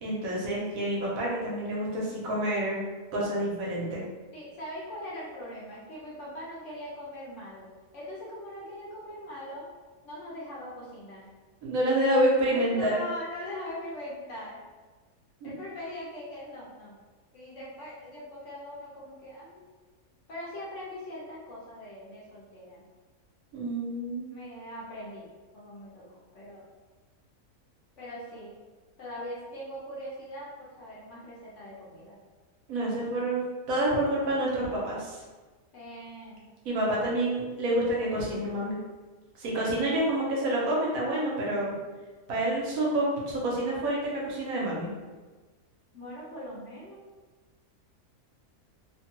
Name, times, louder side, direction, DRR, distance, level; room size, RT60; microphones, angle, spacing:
voice 1, 0.0-2.8 3.1-4.0 11.6-13.0 15.4-15.5 23.5-24.3 32.7-35.2 36.6-38.8 39.4-41.7 42.3-44.9, right 1 dB, 70° right, -4 dB, 1.1 m, -28 dB
voice 2, 4.3-7.7 7.9-9.7 10.0-11.2 12.5-14.6 15.4-17.0 17.3-19.6 20.3-22.8 24.3-25.3 25.5-26.6 28.0-28.5 29.0-32.2 35.7-36.4 45.9-47.0, left 1 dB, 60° left, -5 dB, 0.9 m, -41 dB
2.8 x 2.2 x 2.9 m, 1.3 s
omnidirectional pair, 1.6 m